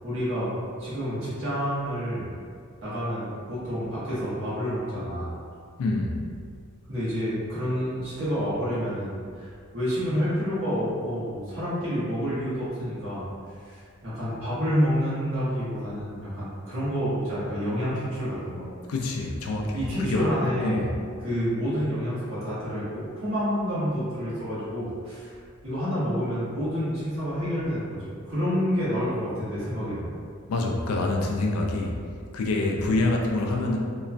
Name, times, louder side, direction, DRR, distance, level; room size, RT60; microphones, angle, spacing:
voice 1, 0.0-0.5 0.8-2.3 2.8-5.3 6.9-13.3 13.6-18.7 19.7-20.8 21.2-25.4 25.6-30.1 32.7-32.9, equal, 70° right, -12 dB, 1.1 m, -28 dB
voice 2, 5.8-6.1 18.9-20.3 20.6-20.9 30.5-32.0 32.3-33.8, left 2 dB, 85° left, 1 dB, 0.4 m, -26 dB
2.9 x 2.2 x 2.4 m, 2.2 s
head